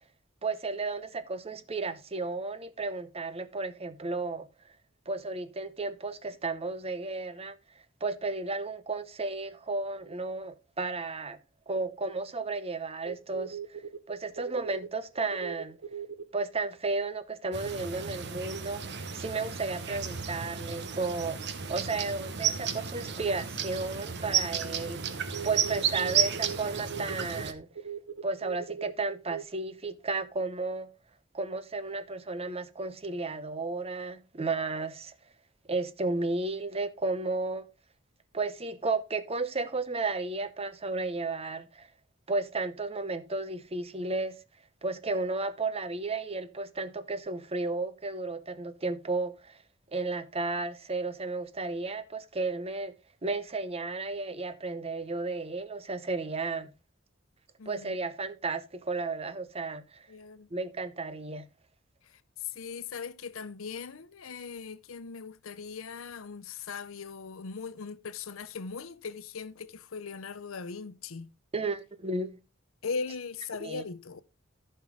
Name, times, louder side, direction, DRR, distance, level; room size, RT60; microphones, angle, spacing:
voice 1, 0.4-4.5 5.1-7.5 8.0-11.4 11.7-13.6 14.1-15.8 16.3-18.8 19.1-21.4 21.7-25.0 25.4-27.7 28.2-30.9 31.3-35.1 35.7-37.7 38.3-41.9 42.3-44.4 44.8-49.6 49.9-52.9 53.2-56.7 57.7-60.1 60.5-61.5 71.5-72.3 73.6-73.8, right 3 dB, 30° right, 0.8 m, -33 dB
sound 1, 13.1-14.0 14.4-14.9 15.3-16.3 18.0-18.1 20.4-20.5 23.4-23.5 23.7-24.4 24.6-24.8 25.3-26.6 26.9-28.9 29.3-29.4, right 7 dB, 75° right, 0.7 m, -39 dB
sound 2, 17.5-27.5, right 7 dB, 60° right, 1.1 m, -33 dB
voice 2, 57.6-57.9 60.1-60.5 62.5-71.3 72.8-74.2, left 5 dB, 80° left, 0.7 m, -39 dB
14.0 x 5.5 x 3.8 m
head